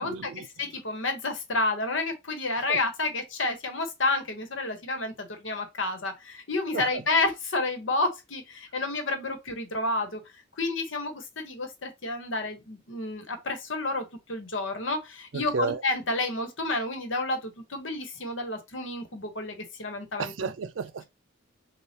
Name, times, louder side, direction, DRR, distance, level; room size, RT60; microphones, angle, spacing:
voice 1, 0.0-0.8 2.6-2.8 6.7-7.0 15.3-15.8 20.2-21.0, right 5 dB, 80° right, 0.5 m, -33 dB
voice 2, 0.6-10.2 10.6-20.5, left 2 dB, 85° left, 1.1 m, -30 dB
6.5 x 2.3 x 2.9 m
head